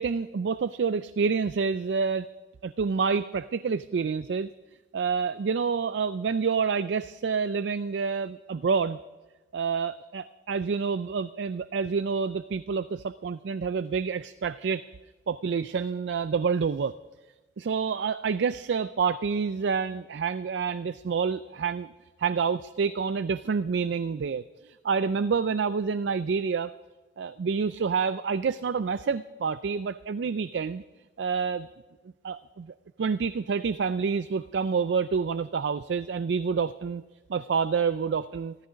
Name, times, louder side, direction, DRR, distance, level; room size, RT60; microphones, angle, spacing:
voice 1, 0.0-2.3 2.6-4.5 4.9-9.0 9.5-14.8 15.3-16.9 17.6-21.9 22.2-26.7 27.2-30.8 31.2-31.7 32.2-37.0 37.3-38.6, right 5 dB, 75° right, 14 dB, 0.4 m, -28 dB
15.5 x 14.0 x 5.2 m, 1.2 s
head